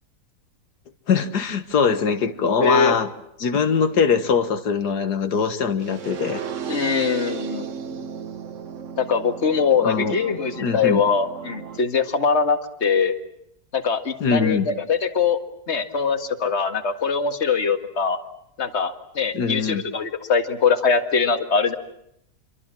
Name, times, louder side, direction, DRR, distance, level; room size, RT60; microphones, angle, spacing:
voice 1, 1.1-3.1 3.4-6.4 9.8-10.2 10.6-11.0 14.2-14.7 19.3-19.8, left 6 dB, 85° left, 9 dB, 2.0 m, -22 dB
voice 2, 2.6-3.0 6.7-7.7 9.0-13.2 13.7-15.4 15.7-18.2 18.6-21.7, left 5 dB, 45° left, 8 dB, 2.1 m, -22 dB
sound 1, 5.8-11.8, right 7 dB, 50° right, 1.4 m, -34 dB
27.5 x 23.5 x 7.6 m, 0.78 s
omnidirectional pair, 1.7 m